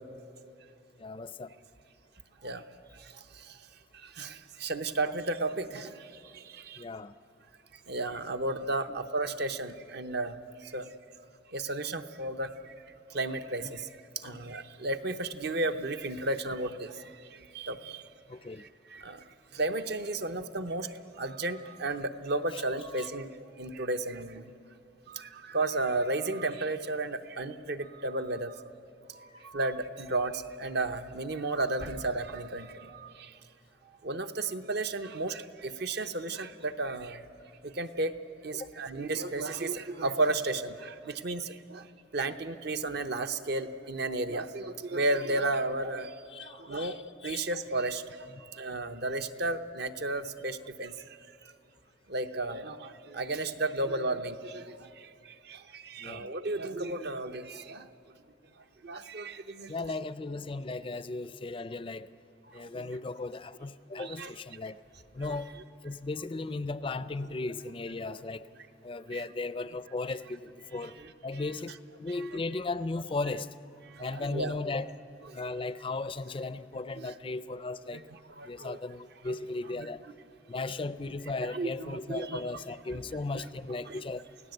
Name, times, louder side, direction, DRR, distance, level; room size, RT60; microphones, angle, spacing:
voice 1, 1.0-1.5 6.8-7.1 13.6-13.7 14.2-14.4 18.3-18.6 22.5-22.6 38.5-38.7 46.3-47.4 56.0-56.3 59.7-62.1 62.5-64.8 65.1-65.5 65.8-68.5 68.8-71.0 71.2-73.5 74.0-74.9 75.3-78.0 78.5-80.0 80.5-84.3, left 3 dB, 30° left, 0.5 m, -36 dB
voice 2, 4.2-6.1 6.3-6.8 7.9-10.4 10.6-10.9 11.5-12.5 13.1-13.9 14.2-16.9 17.5-18.0 18.9-19.2 19.5-20.9 21.2-23.3 23.6-24.5 25.1-28.5 29.4-33.3 34.0-37.2 37.6-38.1 38.4-41.8 42.1-46.1 46.4-47.0 47.2-48.0 48.5-50.9 52.1-54.8 55.5-57.9 58.8-59.7 62.8-62.9 64.0-64.3 65.2-65.4 68.1-68.2 69.1-69.2 70.8-71.1 74.0-74.5 77.0-77.1 77.9-78.8 79.3-79.4 81.4-82.4 82.9-83.0 83.3-83.4 83.8-84.0, right 2 dB, 60° right, 0.9 m, -33 dB
29.0 x 17.0 x 7.9 m
head